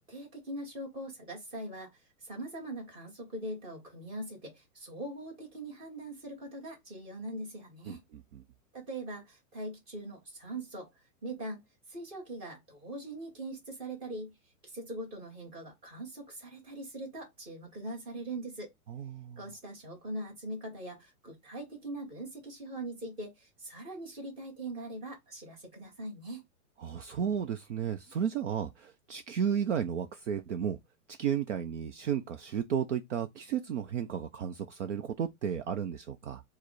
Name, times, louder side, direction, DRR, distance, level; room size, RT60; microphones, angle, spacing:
voice 1, 0.0-1.9 2.2-8.0 8.7-10.9 11.2-11.6 11.9-14.3 14.7-18.7 19.4-26.4, right 1 dB, 10° right, 0.9 m, -41 dB
voice 2, 7.9-8.4 18.9-19.4 26.8-30.8 31.1-36.4, right 8 dB, 50° right, 0.5 m, -33 dB
4.6 x 2.0 x 4.6 m
hypercardioid pair, 165°, 46 cm